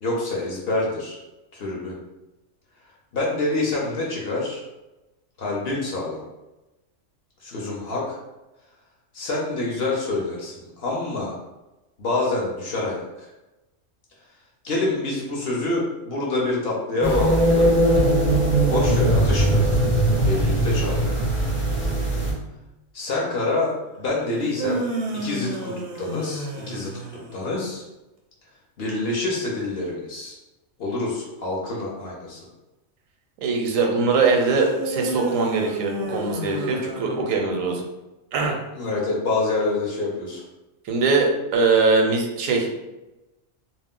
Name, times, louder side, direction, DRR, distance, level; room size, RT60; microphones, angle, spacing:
voice 1, 0.0-1.2 1.5-2.0 3.1-4.7 5.4-6.2 7.4-8.2 9.1-11.4 12.0-13.3 14.6-17.7 18.6-19.8 20.2-21.3 22.9-24.9 25.1-26.9 27.3-27.8 28.8-30.3 30.8-32.4 38.7-40.4, left 2 dB, 60° left, -3 dB, 0.8 m, -26 dB
sound 1, 17.0-22.3, right 1 dB, 15° left, 0.4 m, -20 dB
sound 2, 24.3-27.6 34.7-37.7, right 2 dB, 65° right, 0.6 m, -30 dB
voice 2, 33.4-37.8 38.3-38.6 40.8-42.7, right 4 dB, 85° right, 2 dB, 1.0 m, -21 dB
2.4 x 2.1 x 3.6 m, 1.0 s
omnidirectional pair, 1.4 m